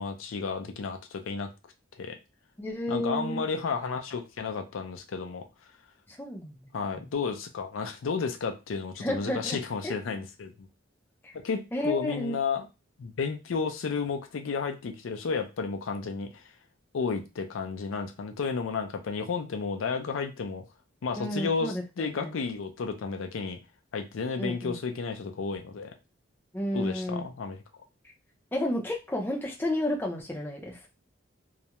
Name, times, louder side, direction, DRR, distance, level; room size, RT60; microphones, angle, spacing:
voice 1, 0.0-1.5 2.0-2.2 2.9-5.5 6.7-10.7 11.3-12.7 13.0-16.4 16.9-20.6 21.0-23.6 23.9-26.0 26.7-27.6, left 5 dB, 90° left, 6 dB, 0.4 m, -32 dB
voice 2, 2.6-3.4 6.1-6.7 7.0-7.1 9.0-9.9 11.2-11.3 11.7-12.3 21.2-22.4 24.4-24.8 26.5-27.2 28.5-30.9, left 1 dB, 10° left, -1 dB, 0.4 m, -32 dB
2.3 x 2.1 x 2.8 m, 0.26 s
head